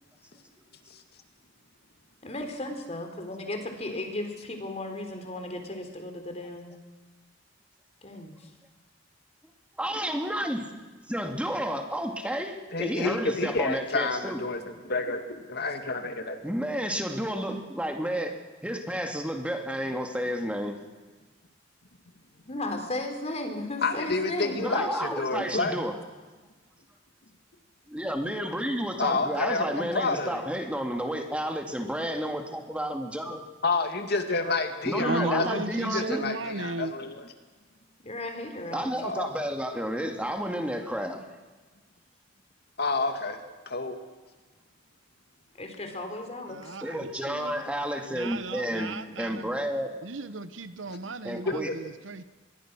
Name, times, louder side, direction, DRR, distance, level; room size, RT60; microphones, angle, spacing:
voice 1, 2.2-6.7 8.0-8.5 22.4-24.9 38.0-38.9 45.6-46.6, left 1 dB, 35° left, 5 dB, 3.8 m, -35 dB
voice 2, 9.8-10.7 11.1-14.4 16.4-18.4 18.6-20.8 24.6-25.9 27.9-33.4 34.8-36.2 38.7-41.2 46.8-49.9 51.2-51.7, equal, 5° right, 4 dB, 2.3 m, -31 dB
voice 3, 12.7-16.4 23.8-25.7 29.0-30.5 33.6-37.2 39.0-39.3 42.8-43.4 43.7-44.0 51.7-51.8, left 3 dB, 60° left, 6 dB, 2.2 m, -29 dB
voice 4, 35.0-36.9 46.5-47.6 47.9-49.5 50.0-52.2, right 3 dB, 80° right, 13 dB, 1.0 m, -35 dB
25.0 x 21.5 x 6.2 m, 1.3 s
head